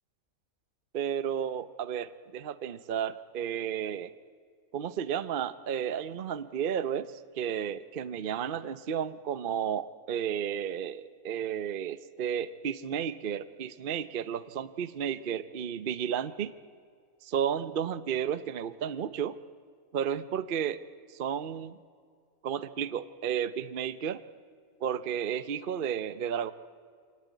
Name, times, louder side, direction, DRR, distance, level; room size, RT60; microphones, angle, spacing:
voice 1, 0.9-4.1 4.7-16.5 17.2-19.4 19.9-20.8 21.2-21.8 22.4-24.2 24.8-26.5, right 8 dB, 50° right, 14 dB, 0.8 m, -32 dB
24.5 x 18.0 x 9.4 m, 2.1 s
omnidirectional pair, 1.5 m